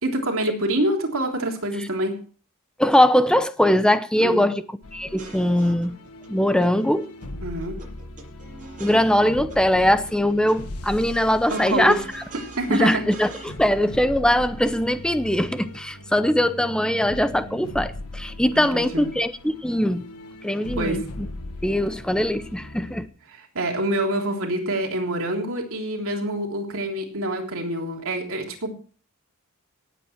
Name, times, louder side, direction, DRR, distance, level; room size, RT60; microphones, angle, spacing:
voice 1, 0.0-2.1 4.2-4.4 7.4-7.8 11.5-12.0 12.6-13.0 18.5-19.1 20.8-21.0 23.3-28.7, right 1 dB, 65° right, 3.3 m, -26 dB
voice 2, 2.8-4.6 4.9-6.0 6.3-7.1 8.8-12.2 12.7-20.1 20.4-21.3 21.6-23.1, left 1 dB, 5° left, 0.8 m, -21 dB
sound 1, 4.8-23.1, left 1 dB, 80° left, 1.6 m, -39 dB
sound 2, 5.0-6.3 6.6-7.3 7.5-9.6 9.9-10.6 10.9-13.6, right 3 dB, 35° right, 7.4 m, -43 dB
18.5 x 8.5 x 4.5 m
head